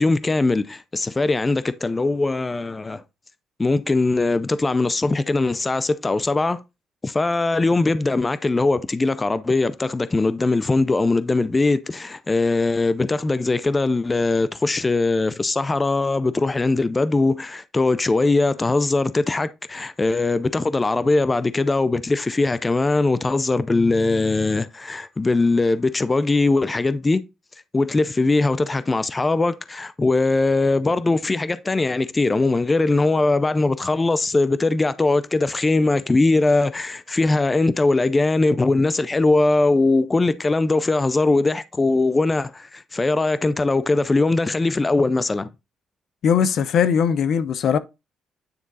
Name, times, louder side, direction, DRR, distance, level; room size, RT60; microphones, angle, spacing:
voice 1, 0.0-3.0 3.6-6.6 7.0-27.2 27.7-45.5, left 3 dB, 25° left, 0.5 m, -21 dB
voice 2, 46.2-47.8, left 7 dB, 65° left, 0.7 m, -19 dB
9.5 x 3.6 x 4.0 m
cardioid pair, 90°, 0 cm